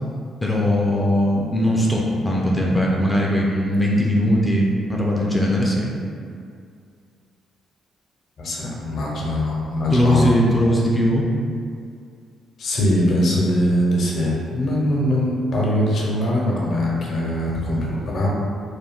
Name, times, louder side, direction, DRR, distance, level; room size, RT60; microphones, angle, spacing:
voice 1, 0.4-5.9 9.9-11.3, equal, 10° left, -3 dB, 0.4 m, -19 dB
voice 2, 8.4-10.3 12.6-18.3, left 1 dB, 60° left, -4 dB, 0.6 m, -22 dB
2.3 x 2.1 x 3.5 m, 2.3 s
cardioid pair, 90°, 0 cm